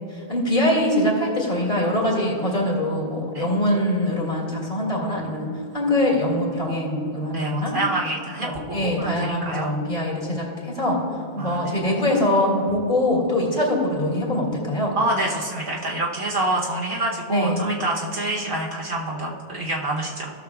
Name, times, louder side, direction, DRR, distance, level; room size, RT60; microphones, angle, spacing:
voice 1, 0.1-5.5 5.7-7.8 8.4-11.0 11.3-15.0 17.3-17.6, left 1 dB, 40° left, -4 dB, 2.2 m, -23 dB
voice 2, 7.3-9.7 11.4-11.7 14.9-20.3, right 2 dB, 50° right, -4 dB, 1.0 m, -27 dB
17.0 x 6.4 x 2.3 m, 2.6 s
omnidirectional pair, 1.2 m